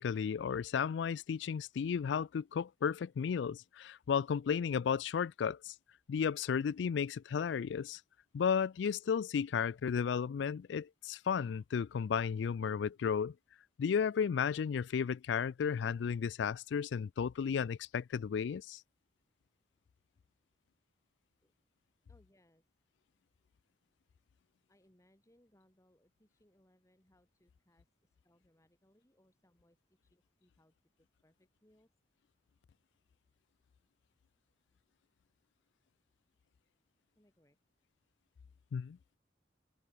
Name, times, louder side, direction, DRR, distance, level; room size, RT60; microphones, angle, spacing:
voice 1, 0.0-5.7 6.1-8.0 8.3-13.3 13.8-18.8 38.7-39.0, left 7 dB, 75° left, 0.3 m, -33 dB
voice 2, 22.1-22.6 24.7-31.9 37.2-37.6, left 1 dB, 15° left, 7.9 m, -71 dB
head